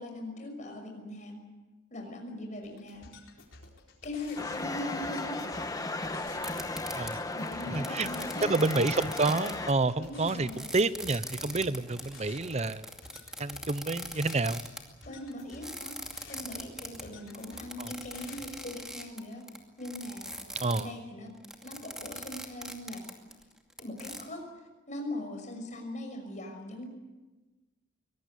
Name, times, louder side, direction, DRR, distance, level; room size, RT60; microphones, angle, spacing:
voice 1, 0.0-1.4 1.9-3.1 4.0-5.5 7.3-8.5 10.0-10.7 15.0-16.0 16.3-19.4 19.8-20.4 20.7-21.3 21.6-23.0 23.8-24.5 24.9-26.9, left 1 dB, 40° left, 3 dB, 6.1 m, -40 dB
sound 1, 2.6-18.6, left 3 dB, 85° left, 4.3 m, -53 dB
sound 2, 4.4-9.7, left 2 dB, 20° left, 1.3 m, -35 dB
sound 3, 6.3-20.8 21.3-24.2, right 1 dB, 5° right, 2.4 m, -41 dB
voice 2, 7.7-8.1 8.4-12.8 13.4-14.6 17.8-17.9 20.6-20.9, right 3 dB, 35° right, 15 dB, 0.8 m, -29 dB
24.0 x 19.0 x 8.3 m, 1.2 s
head